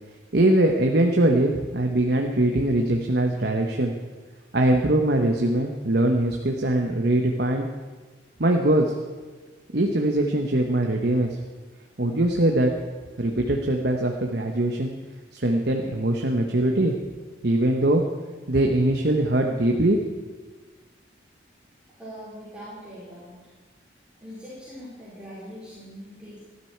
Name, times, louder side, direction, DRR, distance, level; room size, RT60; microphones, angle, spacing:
voice 1, 0.3-3.9 4.5-7.7 8.4-8.9 9.7-11.4 12.0-12.8 13.2-14.9 15.3-16.9 17.4-18.0 18.5-20.2, right 1 dB, 55° right, 2 dB, 1.2 m, -22 dB
voice 2, 21.9-23.3 24.2-26.4, equal, 5° right, -10 dB, 4.9 m, -41 dB
19.5 x 13.0 x 4.6 m, 1.4 s
head